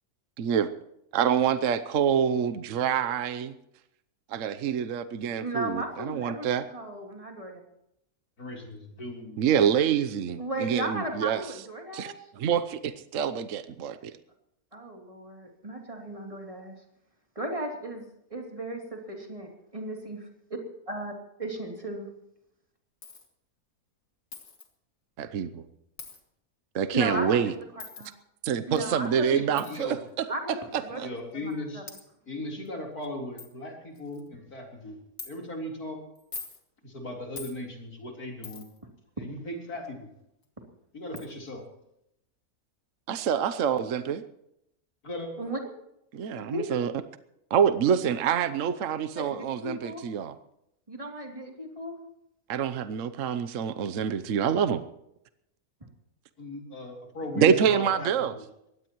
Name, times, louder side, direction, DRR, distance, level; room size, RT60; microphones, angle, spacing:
voice 1, 0.4-0.7 1.1-3.5 4.3-6.7 9.4-11.4 11.9-14.1 25.2-25.7 26.7-27.5 28.4-30.2 30.7-31.1 43.1-44.2 46.1-46.9 47.5-50.3 52.5-54.8 57.4-58.3, right 8 dB, 60° right, 12 dB, 1.1 m, -26 dB
voice 2, 5.4-6.5 6.7-7.6 10.4-12.2 14.7-16.7 17.3-20.6 20.9-21.1 21.4-22.1 26.9-27.5 28.0-28.1 28.7-29.3 29.5-29.6 30.3-31.0 31.4-31.8 45.4-45.6 46.5-46.7 49.1-50.0 50.9-51.9, right 1 dB, 20° right, 1 dB, 3.1 m, -35 dB
voice 3, 8.4-9.4 29.3-30.0 31.0-31.8 32.3-35.0 35.2-36.0 36.8-38.6 39.2-40.1 40.9-41.6 45.0-45.3 56.4-58.4, left 1 dB, 80° left, 0 dB, 4.4 m, -37 dB
Coin (dropping), 23.0-23.3 24.3-24.7 26.0-26.2 27.8-28.1 29.6-29.8 30.7-30.8 31.5-31.6 31.9-32.0 32.7-32.8 33.0-33.1 33.4-33.5 34.0-34.3 35.2-35.3 36.2-36.6 37.4-37.6 38.4-38.8 40.4-40.5 41.2-41.3, left 4 dB, 60° left, 2.4 m, -42 dB
22.5 x 17.5 x 3.1 m, 0.80 s
omnidirectional pair, 1.6 m